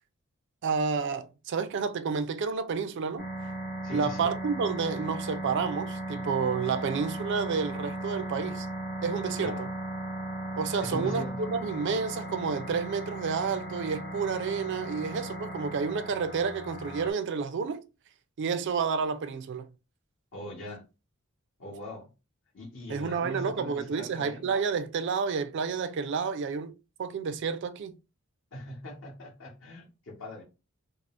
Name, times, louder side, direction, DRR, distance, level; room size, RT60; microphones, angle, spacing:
voice 1, 0.6-3.3 3.9-8.7 9.0-9.5 10.6-17.8 18.4-19.7 22.9-28.0, right 5 dB, 60° right, 0.4 m, -30 dB
sound 1, 3.2-17.1, right 1 dB, 40° left, 0.8 m, -37 dB
voice 2, 3.8-4.3 9.4-9.7 10.8-11.5 20.3-20.8 21.6-22.1 22.5-24.5 28.5-30.4, left 1 dB, 65° left, 1.0 m, -40 dB
3.5 x 2.0 x 2.4 m
head